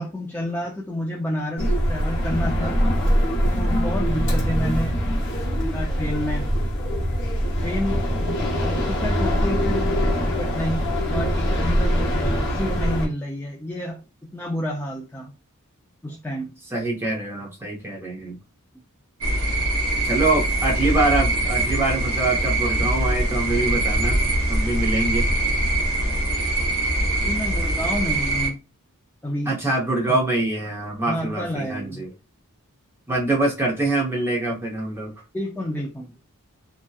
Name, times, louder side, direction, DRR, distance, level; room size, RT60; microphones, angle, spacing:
voice 1, 0.0-2.8 3.4-5.3 5.6-6.5 7.6-10.8 11.1-14.0 14.3-15.3 16.0-16.5 27.1-28.6 29.2-29.5 30.1-30.2 31.1-32.1 35.3-36.1, left 1 dB, 10° left, 0.3 m, -30 dB
sound 1, 1.6-13.1, equal, 55° left, 0.8 m, -23 dB
voice 2, 16.7-18.4 20.0-25.3 29.5-32.1 33.1-35.1, right 2 dB, 10° right, 0.8 m, -24 dB
sound 2, 19.2-28.5, right 1 dB, 70° right, 0.8 m, -23 dB
2.7 x 2.2 x 2.2 m
head